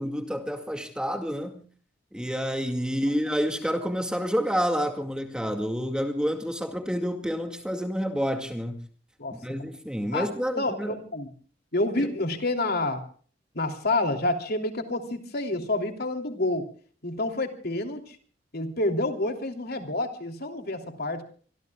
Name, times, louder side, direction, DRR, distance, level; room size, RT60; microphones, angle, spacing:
voice 1, 0.0-1.6 2.1-8.8 9.3-11.0 12.0-12.1, equal, 5° right, 2.1 m, -29 dB
voice 2, 10.1-11.3 11.7-13.0 13.5-16.7 17.0-18.2 18.5-21.2, left 2 dB, 60° left, 3.1 m, -28 dB
25.5 x 24.5 x 2.3 m
head